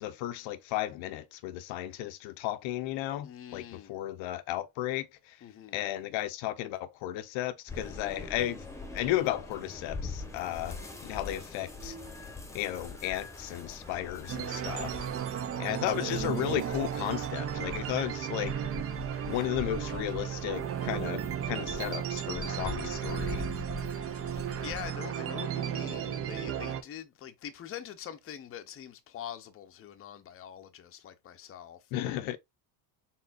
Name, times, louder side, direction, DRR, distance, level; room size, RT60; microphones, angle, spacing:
voice 1, 0.0-5.4 5.7-8.7 8.9-12.0 12.5-15.1 15.6-18.5 19.2-23.5 31.9-32.4, left 13 dB, 75° left, 0.7 m, -34 dB
voice 2, 3.2-3.9 5.4-5.8 24.6-31.8, left 9 dB, 30° left, 0.6 m, -44 dB
sound 1, 7.7-25.0, left 3 dB, 5° left, 0.9 m, -43 dB
sound 2, 14.3-26.8, right 9 dB, 35° right, 0.4 m, -34 dB
4.2 x 3.7 x 2.4 m
cardioid pair, 120°, 46 cm